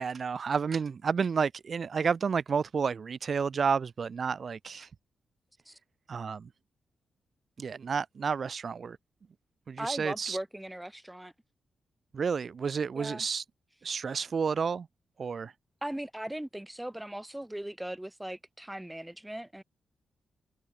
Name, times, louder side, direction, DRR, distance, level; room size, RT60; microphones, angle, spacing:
voice 1, 0.0-4.9 6.1-6.5 7.6-9.0 9.7-10.4 12.1-13.4 13.8-14.9 15.2-15.5, right 6 dB, 55° right, 0.6 m, -30 dB
voice 2, 9.8-11.3 12.9-13.2 15.8-19.6, right 1 dB, 10° right, 1.1 m, -38 dB
cardioid pair, 80°, 0 cm